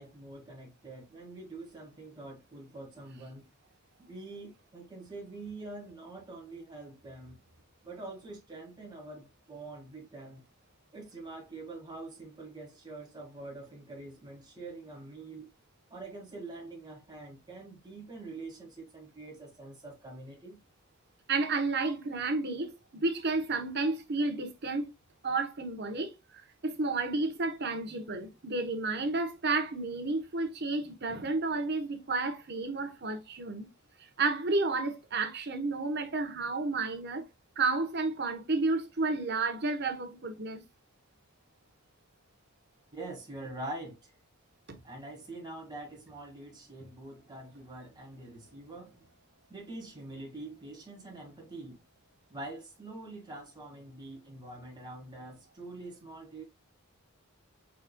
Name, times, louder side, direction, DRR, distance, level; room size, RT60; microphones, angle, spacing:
voice 1, 0.0-3.5 4.0-7.4 7.8-10.4 10.9-15.5 15.9-20.6 42.9-44.1 44.8-49.1 49.5-51.8 52.3-56.4, right 2 dB, 20° right, 1.8 m, -45 dB
voice 2, 21.3-24.9 25.2-33.7 34.0-37.2 37.6-40.6 44.7-44.8, right 3 dB, 50° right, 1.0 m, -31 dB
5.0 x 4.2 x 2.2 m
head